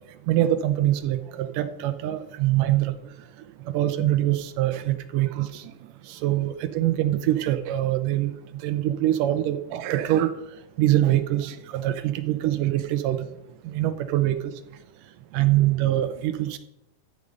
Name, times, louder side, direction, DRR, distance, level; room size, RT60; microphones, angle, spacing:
voice 1, 0.3-2.9 3.7-5.6 6.1-8.3 8.6-10.3 10.8-13.2 13.6-14.5 15.3-16.6, right 13 dB, 85° right, 11 dB, 2.4 m, -24 dB
13.0 x 5.2 x 7.9 m, 0.88 s
omnidirectional pair, 3.8 m